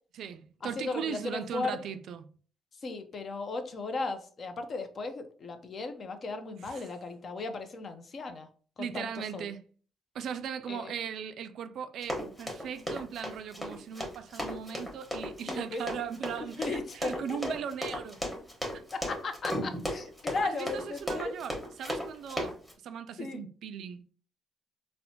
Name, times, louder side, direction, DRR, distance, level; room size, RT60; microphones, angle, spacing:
voice 1, 0.1-2.3 6.6-6.9 8.8-9.6 10.1-18.2 20.4-22.5 22.8-24.1, right 8 dB, 75° right, 0.3 m, -38 dB
voice 2, 0.8-1.8 2.8-8.5 8.8-9.5 10.7-10.9 15.5-15.8 16.4-17.2 18.9-21.3 23.2-23.4, left 3 dB, 50° left, 0.5 m, -36 dB
Run, 12.0-22.7, equal, 10° left, 1.1 m, -35 dB
4.2 x 2.1 x 2.7 m
cardioid pair, 90°, 0 cm